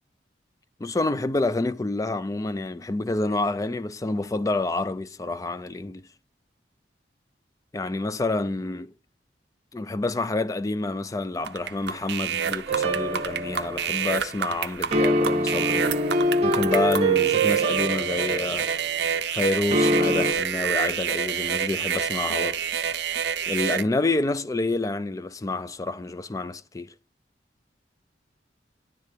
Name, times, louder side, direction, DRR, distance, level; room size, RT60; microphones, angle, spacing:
voice 1, 0.8-6.1 7.7-8.9 9.7-15.9 16.4-18.7 19.3-22.6 23.5-26.9, left 2 dB, 20° left, 0.3 m, -28 dB
sound 1, 11.4-23.8, right 8 dB, 70° right, 0.5 m, -28 dB
sound 2, 12.7-14.1 14.9-18.9 19.7-20.3, right 1 dB, 40° right, 0.8 m, -24 dB
10.5 x 3.6 x 6.6 m
head